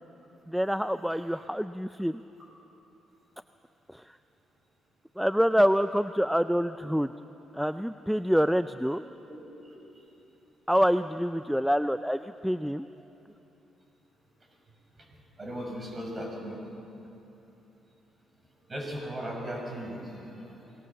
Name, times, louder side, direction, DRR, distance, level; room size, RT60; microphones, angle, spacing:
voice 1, 0.5-2.2 3.9-4.0 5.2-7.1 7.5-9.0 10.7-12.9, equal, ahead, 11 dB, 0.4 m, -26 dB
voice 2, 15.4-16.6 18.7-20.7, equal, 25° right, 0 dB, 6.5 m, -37 dB
25.5 x 19.5 x 7.2 m, 2.9 s
cardioid pair, 90°, 0 cm